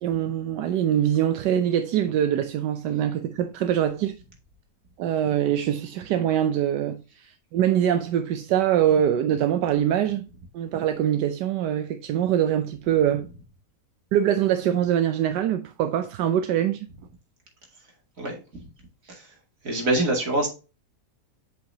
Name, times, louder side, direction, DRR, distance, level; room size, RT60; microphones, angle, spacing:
voice 1, 0.0-4.1 5.0-10.3 10.5-13.3 14.1-16.9, right 10 dB, 80° right, 1.2 m, -23 dB
voice 2, 19.6-20.5, right 2 dB, 50° right, 2.6 m, -24 dB
8.1 x 5.1 x 2.7 m
omnidirectional pair, 1.8 m